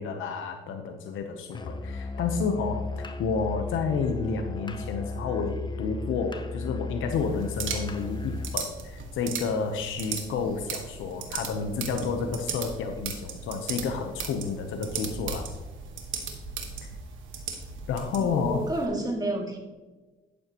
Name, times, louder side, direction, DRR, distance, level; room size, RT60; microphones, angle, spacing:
voice 1, 0.0-15.5 16.8-16.9 17.9-18.6, left 5 dB, 80° left, 5 dB, 0.9 m, -30 dB
Musical instrument, 1.5-8.6, left 3 dB, 25° left, 0.9 m, -35 dB
sound 1, 7.1-18.8, right 5 dB, 75° right, 1.7 m, -37 dB
voice 2, 18.1-19.6, right 1 dB, 20° right, 1 dB, 2.3 m, -30 dB
12.0 x 8.5 x 3.0 m, 1.2 s
cardioid pair, 90°, 20 cm